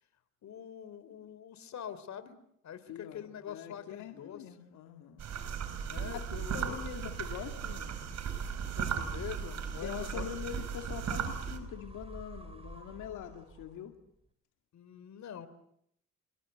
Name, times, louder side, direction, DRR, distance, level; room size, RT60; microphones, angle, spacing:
voice 1, 0.4-2.3 2.6-4.4 5.8-6.8 8.6-10.7 14.7-15.5, left 8 dB, 65° left, 13 dB, 3.3 m, -45 dB
voice 2, 2.9-5.2 6.0-6.3 6.5-8.0 9.8-13.9, left 10 dB, 90° left, 4 dB, 2.4 m, -43 dB
sound 1, 5.2-11.6, right 7 dB, 65° right, 4.7 m, -36 dB
sound 2, 8.7-14.0, right 2 dB, 20° right, 5.3 m, -50 dB
28.0 x 22.0 x 8.0 m, 0.71 s
cardioid pair, 90°, 30 cm